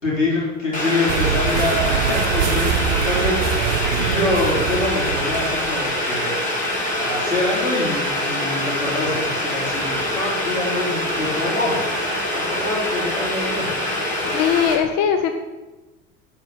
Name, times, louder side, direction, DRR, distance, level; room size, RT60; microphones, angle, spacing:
voice 1, 0.0-6.3 7.0-11.8 12.3-13.7, left 2 dB, 90° left, -6 dB, 4.2 m, -25 dB
Boiling, 0.7-14.7, left 1 dB, 20° left, 4.1 m, -24 dB
sound 1, 1.1-6.0, right 9 dB, 65° right, 0.7 m, -24 dB
voice 2, 14.2-15.3, left 8 dB, 45° left, 7 dB, 1.0 m, -20 dB
12.0 x 6.0 x 8.6 m, 1.2 s
figure-of-eight pair, 70°, 38 cm